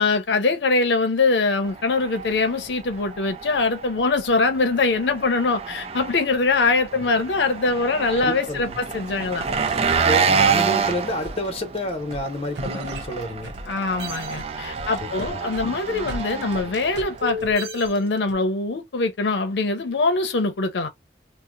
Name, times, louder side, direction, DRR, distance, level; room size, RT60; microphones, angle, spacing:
voice 1, 0.0-9.5 13.7-20.9, left 3 dB, 80° left, 0.6 m, -23 dB
Engine, 1.6-17.4, right 5 dB, 35° right, 0.4 m, -28 dB
voice 2, 8.2-8.8 10.0-13.5 15.0-15.4 16.0-16.2, left 1 dB, 35° left, 0.8 m, -29 dB
sound 1, 9.5-13.7 14.0-18.3, equal, 80° right, 0.7 m, -36 dB
2.7 x 2.0 x 3.7 m
head